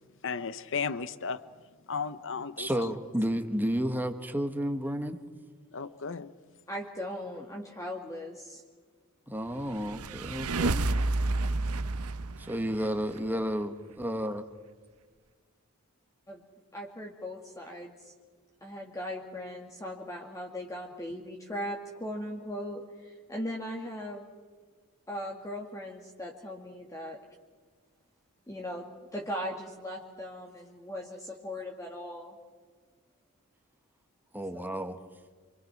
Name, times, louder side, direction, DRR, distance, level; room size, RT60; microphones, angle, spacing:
voice 1, 0.2-1.5 1.9-3.0 5.7-6.3, left 5 dB, 60° left, 1.0 m, -35 dB
voice 2, 2.6-5.2 9.3-10.9 12.4-14.4 34.3-35.0, equal, 10° right, 1.6 m, -31 dB
voice 3, 6.7-8.6 16.3-16.4 16.7-18.1 18.6-24.3 25.1-27.2 28.5-32.4 34.5-34.7, equal, 15° left, 2.0 m, -39 dB
sound 1, 9.6-13.2, right 2 dB, 80° right, 0.9 m, -30 dB
28.0 x 24.0 x 6.0 m
head